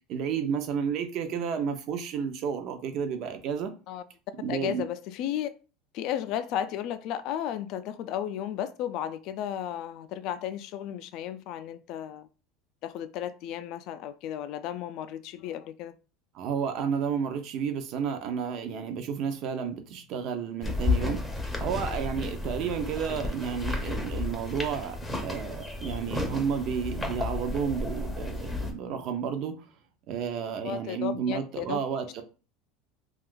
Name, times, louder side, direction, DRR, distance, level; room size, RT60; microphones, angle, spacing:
voice 1, 0.1-3.7 4.4-4.8 16.3-25.0 25.2-29.6 30.1-32.2, right 7 dB, 50° right, 0.6 m, -31 dB
voice 2, 4.5-5.5 5.9-12.3 12.8-15.9 30.6-31.8, left 10 dB, 55° left, 0.3 m, -34 dB
sound 1, 20.6-28.7, left 3 dB, 5° left, 0.6 m, -32 dB
2.5 x 2.3 x 3.6 m
supercardioid pair, 135°, 0 cm